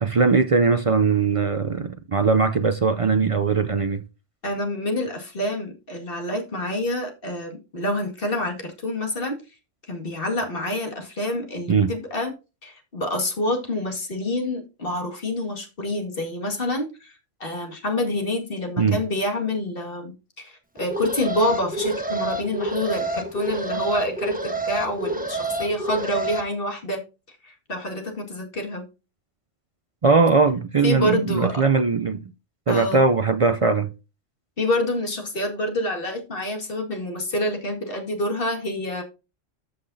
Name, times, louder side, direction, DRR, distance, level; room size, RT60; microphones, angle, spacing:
voice 1, 0.0-4.0 11.7-11.9 18.8-19.0 30.0-32.3 32.7-33.9, right 4 dB, 50° right, 0.4 m, -20 dB
voice 2, 4.4-9.4 9.9-12.3 12.6-27.0 27.4-28.8 30.8-31.6 32.7-33.0 34.6-39.0, left 1 dB, 45° left, 2.2 m, -27 dB
Alarm, 20.8-26.4, right 2 dB, 10° right, 1.0 m, -28 dB
13.5 x 5.6 x 2.7 m
omnidirectional pair, 1.3 m